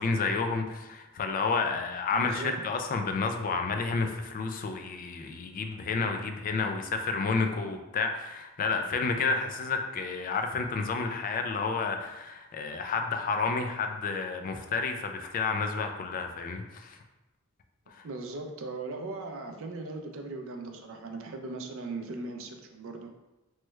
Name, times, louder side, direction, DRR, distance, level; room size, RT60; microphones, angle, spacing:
voice 1, 0.0-17.0 17.9-18.0, left 4 dB, 40° left, 5 dB, 0.3 m, -30 dB
voice 2, 2.1-2.6 18.0-23.1, right 3 dB, 65° right, 4 dB, 0.4 m, -38 dB
3.0 x 2.2 x 3.1 m, 1.0 s
head